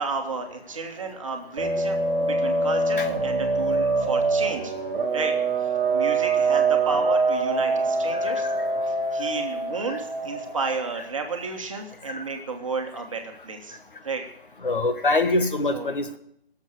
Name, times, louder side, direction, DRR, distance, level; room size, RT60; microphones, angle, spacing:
voice 1, 0.0-4.7 5.1-5.3 5.6-8.5 8.8-13.8 14.0-14.2 15.7-15.9, right 4 dB, 30° right, 3 dB, 1.6 m, -32 dB
sound 1, 1.6-10.8, right 3 dB, 15° right, 1.7 m, -24 dB
voice 2, 14.6-16.2, left 2 dB, 55° left, 7 dB, 1.5 m, -24 dB
17.0 x 7.4 x 6.7 m, 0.72 s
figure-of-eight pair, 165°, 31 cm